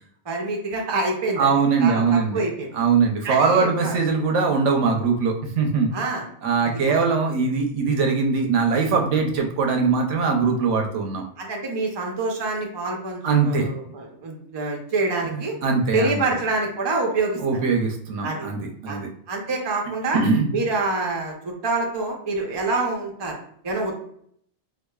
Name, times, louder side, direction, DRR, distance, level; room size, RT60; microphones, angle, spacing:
voice 1, 0.3-1.5 1.8-2.7 3.2-4.0 5.9-6.3 6.9-7.1 11.4-15.6 15.9-17.6 18.2-18.5 18.9-19.0 19.3-20.2 20.5-23.4 23.6-23.9, right 3 dB, 30° right, 0 dB, 0.5 m, -26 dB
voice 2, 1.4-2.4 2.7-5.9 6.4-11.2 13.2-13.7 15.3-16.2 17.4-19.1 20.1-20.5, right 5 dB, 70° right, 3 dB, 0.9 m, -21 dB
4.7 x 2.4 x 2.3 m, 0.65 s
omnidirectional pair, 1.3 m